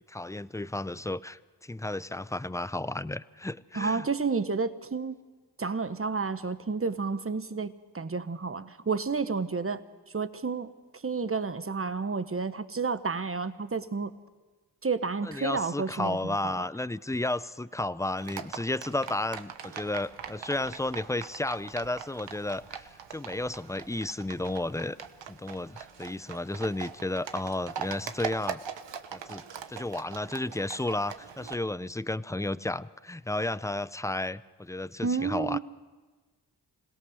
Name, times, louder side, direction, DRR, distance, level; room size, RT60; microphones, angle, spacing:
voice 1, 0.1-4.1 15.2-25.0 25.3-28.6 29.1-29.4 29.7-35.6, left 2 dB, 5° left, 17 dB, 0.5 m, -33 dB
voice 2, 3.7-5.2 5.6-9.8 10.1-10.7 11.0-14.1 14.8-16.6 35.0-35.6, right 4 dB, 30° right, 13 dB, 1.1 m, -30 dB
Livestock farm animals working animals, 18.2-31.5, right 7 dB, 80° right, 1.1 m, -42 dB
26.5 x 17.0 x 6.5 m, 1.3 s
cardioid pair, 45°, 43 cm